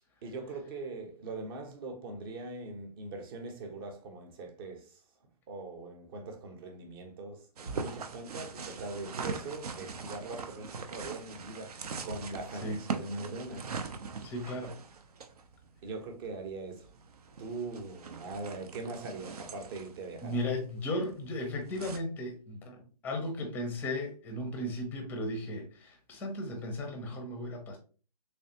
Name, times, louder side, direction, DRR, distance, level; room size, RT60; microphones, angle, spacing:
voice 1, 0.0-5.0 5.5-13.7 15.8-16.9 17.4-20.4, right 3 dB, 35° right, 0.9 m, -41 dB
sound 1, 7.6-22.0, right 5 dB, 65° right, 0.6 m, -42 dB
voice 2, 14.2-14.8 20.2-22.8 23.0-27.8, left 1 dB, 10° left, 0.6 m, -35 dB
3.3 x 3.2 x 2.8 m
hypercardioid pair, 145°, 21 cm